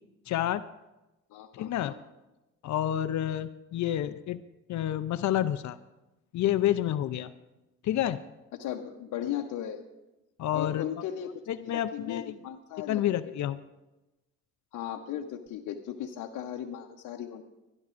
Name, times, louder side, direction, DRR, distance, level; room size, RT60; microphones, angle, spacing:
voice 1, 0.3-0.6 1.5-1.9 2.6-4.4 4.7-5.8 6.3-7.3 7.8-8.2 10.4-10.9 11.5-12.3 12.9-13.6, left 12 dB, 70° left, 13 dB, 0.6 m, -29 dB
voice 2, 1.3-1.9 8.5-9.8 10.5-11.3 11.6-13.3 14.7-17.4, left 10 dB, 85° left, 1 dB, 0.9 m, -37 dB
25.0 x 11.0 x 2.5 m, 1.0 s
cardioid pair, 90°, 30 cm